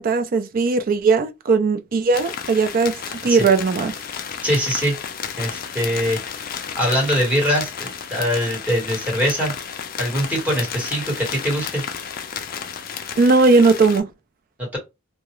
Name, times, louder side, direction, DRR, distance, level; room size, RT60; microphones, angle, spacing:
voice 1, 0.0-2.9 3.2-3.9 13.2-14.1, right 4 dB, 45° right, 0.3 m, -18 dB
sound 1, 2.1-14.0, left 7 dB, 45° left, 0.4 m, -32 dB
voice 2, 4.4-4.9 5.4-6.2 6.7-9.5 10.0-11.8, equal, 10° right, 1.2 m, -22 dB
2.3 x 2.0 x 3.0 m
head